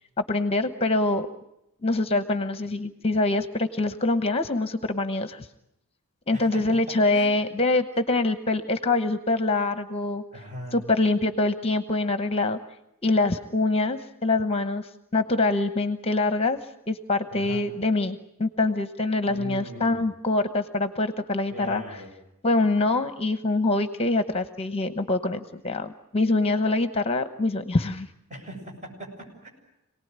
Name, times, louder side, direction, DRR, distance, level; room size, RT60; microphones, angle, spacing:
voice 1, 0.3-1.3 1.8-5.5 6.3-10.2 10.7-12.6 13.0-16.6 16.9-21.8 22.4-28.1, left 2 dB, 25° left, 9 dB, 1.0 m, -25 dB
voice 2, 6.3-6.6 7.1-7.3 10.3-10.8 17.3-17.7 19.3-20.1 21.5-22.1 28.3-29.5, equal, 35° right, 1 dB, 7.6 m, -39 dB
27.5 x 19.0 x 9.6 m, 0.86 s
head